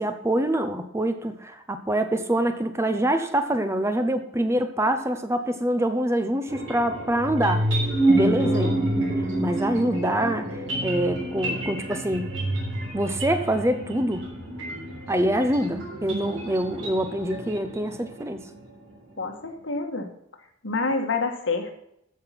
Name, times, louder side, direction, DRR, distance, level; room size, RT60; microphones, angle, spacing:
voice 1, 0.0-7.7 8.2-8.8 9.2-12.4 12.9-14.3 15.1-18.5, right 1 dB, 15° right, 8 dB, 0.7 m, -25 dB
sound 1, 6.5-18.6, right 1 dB, 90° right, 5.1 m, -28 dB
voice 2, 8.2-8.8 19.2-20.1 20.6-21.7, left 3 dB, 75° left, 5 dB, 1.7 m, -28 dB
14.5 x 5.9 x 5.9 m, 0.78 s
head